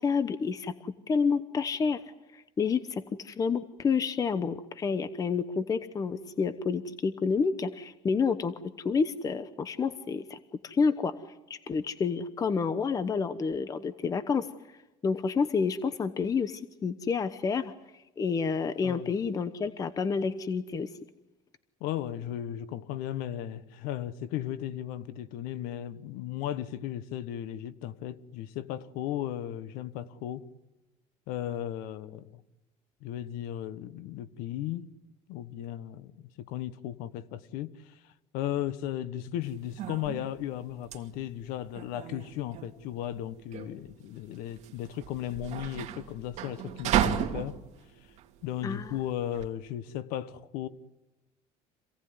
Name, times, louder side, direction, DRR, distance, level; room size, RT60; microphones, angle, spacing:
voice 1, 0.0-2.0 2.3-8.5 8.8-10.4 10.6-11.1 11.5-14.5 15.0-17.7 18.2-20.9 48.6-49.0, left 5 dB, 25° left, 0.9 m, -29 dB
voice 2, 21.8-30.4 31.3-32.4 33.0-34.9 35.3-36.1 36.4-38.0 38.3-47.5 48.4-50.7, left 12 dB, 80° left, 1.4 m, -36 dB
sound 1, 39.4-49.5, right 10 dB, 50° right, 2.4 m, -34 dB
26.5 x 17.5 x 9.6 m
cardioid pair, 140°, 15 cm